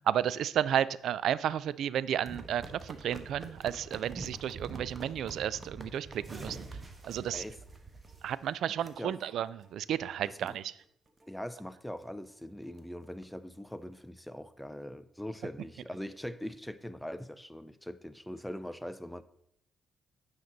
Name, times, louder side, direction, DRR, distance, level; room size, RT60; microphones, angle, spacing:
voice 1, 0.1-6.7 7.0-7.4 8.2-10.7, right 10 dB, 75° right, 0.3 m, -32 dB
sound 1, 2.2-8.5 8.8-9.0 9.5-9.7 10.1-10.2 10.4-10.5 11.1-11.3 11.6-11.7 12.0-12.1 12.4-13.2 13.8-13.9, right 3 dB, 30° right, 1.1 m, -45 dB
voice 2, 8.7-9.2 10.3-10.6 11.3-19.2, equal, ahead, 0.5 m, -42 dB
9.3 x 5.9 x 3.9 m
cardioid pair, 90°, 0 cm